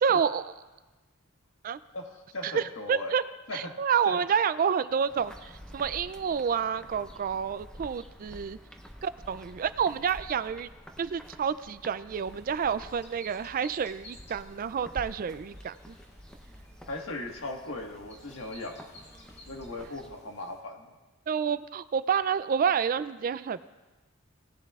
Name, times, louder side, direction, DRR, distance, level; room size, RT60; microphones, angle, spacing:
voice 1, 0.0-0.5 1.6-1.8 2.4-3.2 3.5-8.6 9.0-10.7 11.0-15.9 21.3-23.6, right 7 dB, 45° right, 14 dB, 0.3 m, -29 dB
voice 2, 1.9-3.1 3.5-3.7 4.1-4.2 16.9-18.8 19.5-20.9, left 2 dB, 70° left, 2 dB, 1.5 m, -38 dB
sound 1, 5.1-20.2, equal, 5° left, 0.7 m, -49 dB
sound 2, 12.1-20.6, left 1 dB, 55° left, 2.0 m, -55 dB
18.5 x 10.5 x 2.4 m, 1.2 s
head